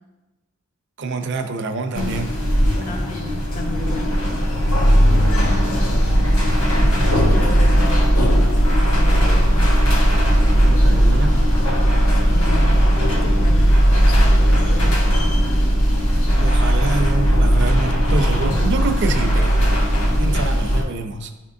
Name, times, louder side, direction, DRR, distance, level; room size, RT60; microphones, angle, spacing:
voice 1, 1.0-2.4 7.5-7.6 10.6-11.4 16.4-19.6 20.2-21.3, right 3 dB, 55° right, 6 dB, 0.5 m, -26 dB
sound 1, 1.9-20.8, equal, 85° left, 1.3 m, -17 dB
voice 2, 2.8-4.2 6.9-9.5 12.1-15.0, left 1 dB, 40° left, 2 dB, 0.7 m, -33 dB
10.0 x 3.6 x 2.6 m, 1.1 s
head